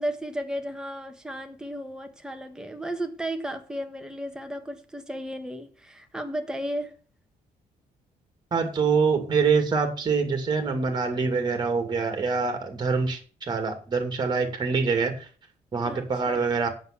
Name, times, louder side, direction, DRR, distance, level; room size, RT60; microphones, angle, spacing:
voice 1, 0.0-6.9 15.9-16.4, right 1 dB, 5° right, 1.3 m, -34 dB
voice 2, 8.5-15.3 15.7-16.7, right 5 dB, 30° right, 2.6 m, -25 dB
8.0 x 7.2 x 7.2 m
cardioid pair, 170°, 15 cm